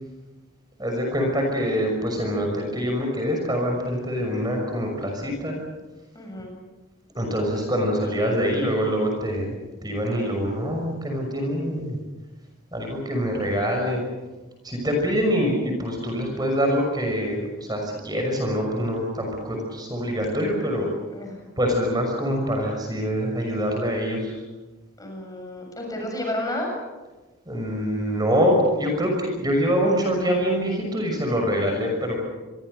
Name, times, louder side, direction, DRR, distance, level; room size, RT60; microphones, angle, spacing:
voice 1, 0.8-5.5 7.1-9.5 9.8-12.0 12.7-14.0 14.6-20.9 21.6-24.3 27.5-32.2, equal, 20° right, 2 dB, 6.1 m, -25 dB
voice 2, 6.1-6.6 21.1-21.5 25.0-26.7, left 1 dB, 15° left, 1 dB, 7.3 m, -31 dB
28.0 x 23.5 x 6.7 m, 1.1 s
head